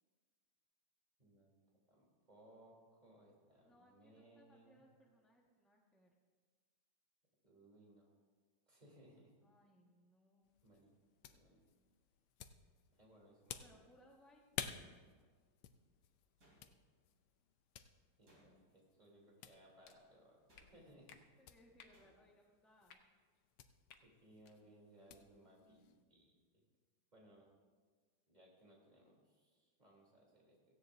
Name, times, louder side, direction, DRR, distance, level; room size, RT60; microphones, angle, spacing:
voice 1, 1.2-1.5 1.9-4.8 7.4-8.1 8.7-9.3 10.6-10.9 11.2-11.6 12.9-13.9 18.2-20.4 20.7-21.3 24.0-26.6 27.1-27.5 28.3-30.6, right 1 dB, 20° right, -3 dB, 3.4 m, -65 dB
voice 2, 3.6-6.1 9.4-10.5 13.6-14.7 15.2-15.3 18.3-18.6 21.4-23.1, equal, ahead, -3 dB, 1.1 m, -68 dB
sound 1, 10.4-26.0, left 9 dB, 90° left, 1.6 m, -55 dB
sound 2, 16.4-17.1 18.2-18.9 20.5-21.1 21.9-22.5, equal, 40° right, 3.3 m, -70 dB
sound 3, 19.8-20.0 20.5-20.7 21.1-21.2 21.8-22.0 22.8-23.0 23.9-24.0 24.4-24.5, left 7 dB, 65° left, 1.4 m, -60 dB
17.0 x 15.5 x 2.7 m, 1.5 s
omnidirectional pair, 2.3 m